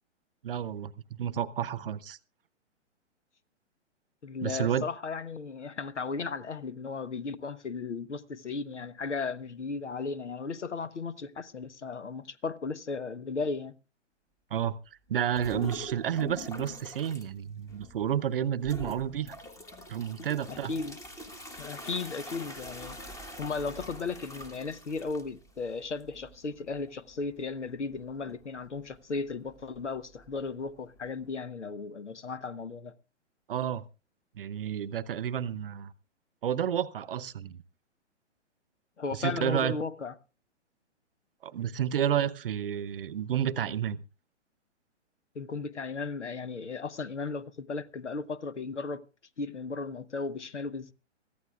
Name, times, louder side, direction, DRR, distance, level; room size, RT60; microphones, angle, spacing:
voice 1, 0.4-0.9 1.2-2.2 4.4-4.8 14.5-14.7 15.1-19.4 19.9-20.7 33.5-33.8 34.4-35.9 36.4-37.6 39.1-39.8 41.4-44.0, right 9 dB, 50° right, 0.9 m, -30 dB
voice 2, 4.2-13.7 20.5-21.0 21.6-23.0 23.4-32.9 39.0-40.1 45.3-49.0 49.4-50.9, left 4 dB, 70° left, 1.2 m, -35 dB
sound 1, 15.3-17.3 17.7-18.2 18.6-31.3, left 1 dB, 10° left, 1.4 m, -45 dB
23.5 x 15.0 x 2.4 m
figure-of-eight pair, 125°, 36 cm